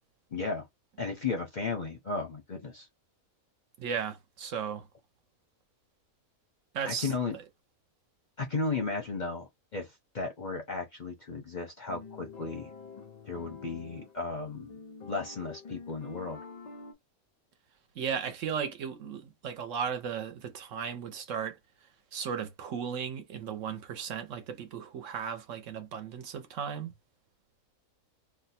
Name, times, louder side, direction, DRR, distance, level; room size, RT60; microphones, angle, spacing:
voice 1, 0.3-0.7 1.0-2.9 6.8-7.3 8.4-12.7 13.2-14.7 15.0-16.4, left 4 dB, 45° left, 0.6 m, -35 dB
voice 2, 3.8-4.9 6.7-7.4 18.0-21.6 22.1-26.9, right 7 dB, 65° right, 1.0 m, -36 dB
sound 1, 11.9-16.9, left 4 dB, 85° left, 0.3 m, -47 dB
2.7 x 2.1 x 4.1 m
omnidirectional pair, 1.5 m